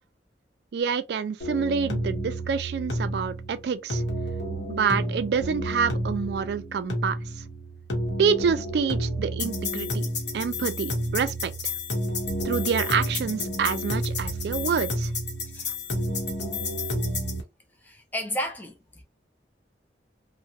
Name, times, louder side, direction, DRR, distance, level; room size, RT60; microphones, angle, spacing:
voice 1, 0.7-4.0 4.7-7.2 8.2-10.0 10.3-11.5 12.5-15.1, right 6 dB, 65° right, 0.3 m, -27 dB
sound 1, 1.4-17.4, equal, 75° left, 0.9 m, -30 dB
voice 2, 17.8-19.0, equal, 10° left, 0.4 m, -33 dB
2.8 x 2.1 x 2.4 m
head